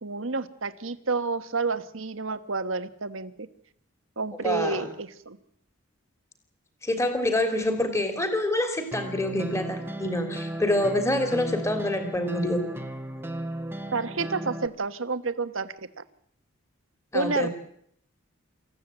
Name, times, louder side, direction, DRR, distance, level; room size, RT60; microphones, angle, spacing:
voice 1, 0.0-3.5 4.2-5.4 13.9-16.0 17.1-17.5, right 4 dB, 75° right, 10 dB, 1.4 m, -30 dB
voice 2, 4.4-4.8 6.8-12.6 17.1-17.5, left 1 dB, 15° left, 6 dB, 3.0 m, -26 dB
sound 1, 8.9-14.7, right 1 dB, 10° right, 1.2 m, -35 dB
26.5 x 15.0 x 8.9 m, 0.71 s
head